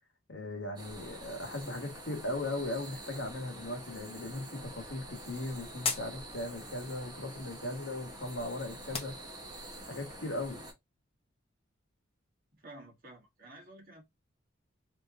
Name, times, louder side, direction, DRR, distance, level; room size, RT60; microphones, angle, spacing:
voice 1, 0.3-9.1 9.9-10.6, left 2 dB, 65° left, 1.2 m, -38 dB
sound 1, 0.8-10.7, right 1 dB, 20° right, 1.0 m, -47 dB
sound 2, 4.3-9.8, left 5 dB, 30° left, 0.8 m, -43 dB
voice 2, 12.5-14.0, right 1 dB, 45° right, 1.5 m, -51 dB
3.4 x 2.8 x 3.6 m
head